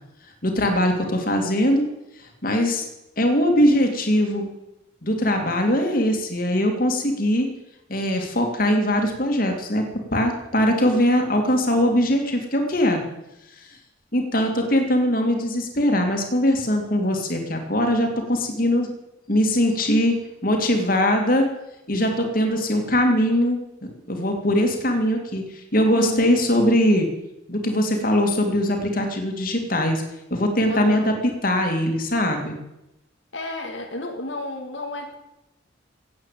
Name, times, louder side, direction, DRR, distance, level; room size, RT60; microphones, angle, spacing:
voice 1, 0.4-1.9 2.4-2.8 3.2-4.5 5.0-7.5 7.9-9.8 10.1-13.0 14.1-18.9 19.3-20.2 20.4-21.5 21.9-23.6 24.1-27.1 27.5-30.0 30.3-32.6, equal, 45° left, 3 dB, 2.5 m, -21 dB
voice 2, 25.9-26.4 30.7-31.1 33.3-35.2, left 1 dB, 85° left, 2 dB, 2.1 m, -31 dB
16.5 x 8.7 x 7.6 m, 0.91 s
head